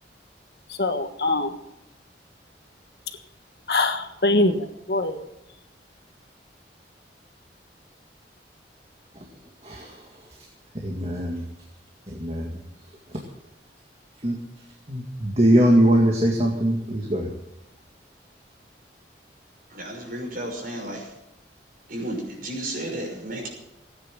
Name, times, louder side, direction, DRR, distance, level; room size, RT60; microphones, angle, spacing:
voice 1, 0.7-1.6 3.7-5.2, left 2 dB, 60° left, 7 dB, 1.5 m, -23 dB
voice 2, 9.6-10.1 10.8-11.4 12.1-12.5 13.1-13.2 14.2-14.4 14.9-17.3, right 1 dB, 35° right, 0 dB, 2.1 m, -21 dB
voice 3, 19.7-21.1 21.9-23.5, right 1 dB, 50° right, 0 dB, 6.1 m, -33 dB
17.0 x 9.8 x 7.7 m, 0.89 s
head